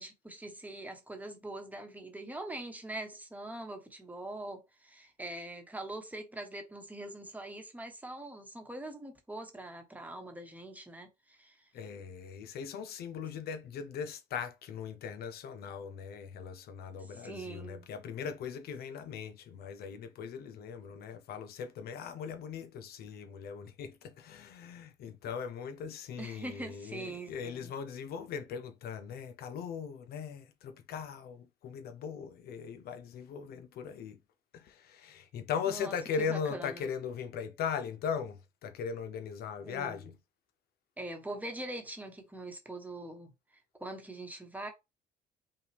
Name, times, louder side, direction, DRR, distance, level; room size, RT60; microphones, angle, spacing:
voice 1, 0.0-11.7 17.2-17.9 26.2-27.7 35.7-35.9 36.3-36.9 39.6-40.0 41.0-44.7, right 1 dB, 10° right, 1.1 m, -43 dB
voice 2, 11.7-34.2 34.5-40.2, left 7 dB, 65° left, 0.7 m, -39 dB
5.5 x 2.4 x 3.4 m
cardioid pair, 110°, 17 cm